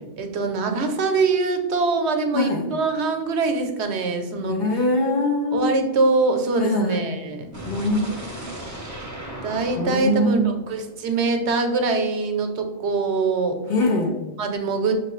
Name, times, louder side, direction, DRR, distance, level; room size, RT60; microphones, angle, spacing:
voice 1, 0.2-4.6 5.5-7.5 9.4-13.6 14.4-15.0, right 3 dB, 75° right, 5 dB, 0.9 m, -23 dB
voice 2, 2.3-2.7 4.5-5.7 6.6-7.0 7.6-8.5 9.8-10.5 13.7-14.2, left 1 dB, 60° left, 1 dB, 1.0 m, -23 dB
sound 1, 7.5-11.5, right 1 dB, 20° right, 0.7 m, -37 dB
5.7 x 2.9 x 3.0 m, 1.1 s
omnidirectional pair, 1.2 m